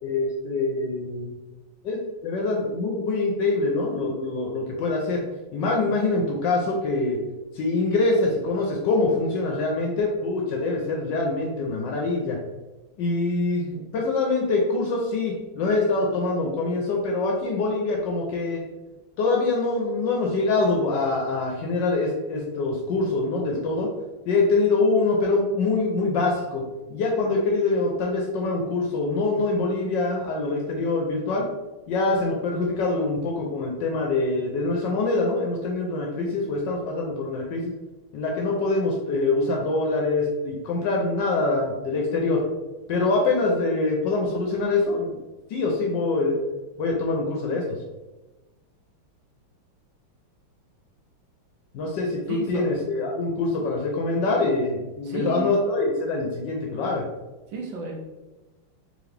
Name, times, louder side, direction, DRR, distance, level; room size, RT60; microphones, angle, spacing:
voice 1, 0.0-1.3 1.8-2.0 2.2-5.2 5.5-7.2 7.5-12.4 13.0-18.6 19.2-23.9 24.3-26.6 26.9-31.5 31.9-37.7 38.1-42.4 42.9-45.2 45.5-46.4 46.8-47.6 51.7-57.0, left 3 dB, 75° left, -1 dB, 1.1 m, -24 dB
voice 2, 52.3-52.7 55.0-55.5 57.5-58.0, right 3 dB, 70° right, 0 dB, 1.4 m, -32 dB
3.8 x 3.1 x 3.2 m, 1.1 s
omnidirectional pair, 2.3 m